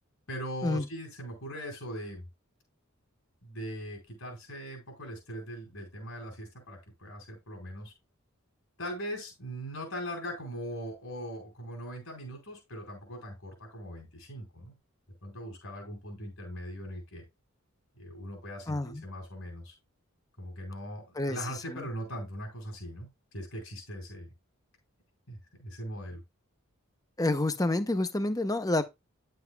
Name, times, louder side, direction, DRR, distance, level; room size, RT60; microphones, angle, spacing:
voice 1, 0.3-2.2 3.4-7.9 8.8-14.7 15.2-17.2 18.0-19.7 20.4-23.1 23.3-24.3 25.3-26.2, equal, 80° left, 4.7 m, -40 dB
voice 2, 18.7-19.0 21.2-21.4 21.7-21.9 27.2-28.8, left 2 dB, 15° left, 0.7 m, -28 dB
10.5 x 7.6 x 2.3 m
head